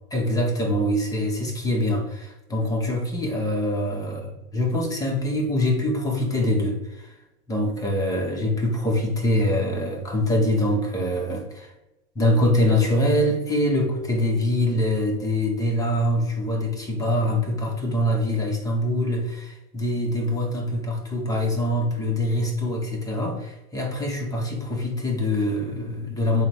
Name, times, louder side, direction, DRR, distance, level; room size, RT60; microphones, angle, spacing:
voice 1, 0.1-7.1 7.5-11.7 12.2-26.5, left 1 dB, 10° left, 1 dB, 0.6 m, -24 dB
3.8 x 2.1 x 4.4 m, 0.96 s
hypercardioid pair, 120°, 45 cm